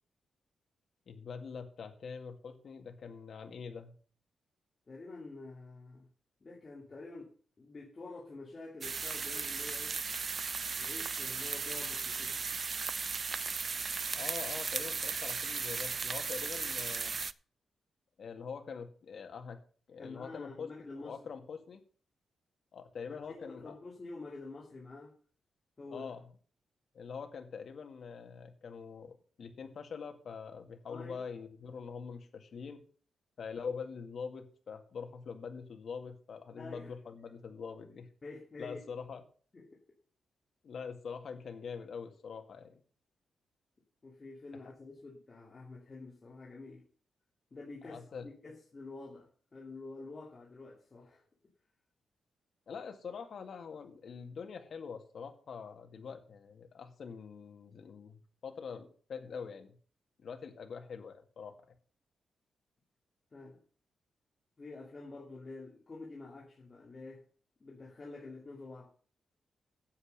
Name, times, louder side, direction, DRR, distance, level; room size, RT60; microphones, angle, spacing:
voice 1, 1.1-3.9 14.1-17.2 18.2-19.6 19.9-20.7 21.0-21.8 22.7-23.7 25.9-26.2 26.9-32.8 33.4-38.1 38.6-39.2 40.6-42.8 47.8-48.3 52.7-59.8 60.2-61.5, left 6 dB, 55° left, 5 dB, 2.1 m, -44 dB
voice 2, 4.9-6.1 6.4-7.3 7.6-10.0 10.7-12.4 20.0-21.2 23.1-25.1 25.8-26.1 30.9-31.3 36.6-36.9 38.2-38.8 39.5-39.7 44.0-46.8 47.5-51.2 63.3-63.6 64.6-67.2 67.6-68.9, left 3 dB, 30° left, -3 dB, 2.5 m, -48 dB
sound 1, 8.8-17.3, right 5 dB, 35° right, 0.4 m, -36 dB
9.7 x 7.9 x 6.6 m, 0.43 s
wide cardioid pair, 145°, 0 cm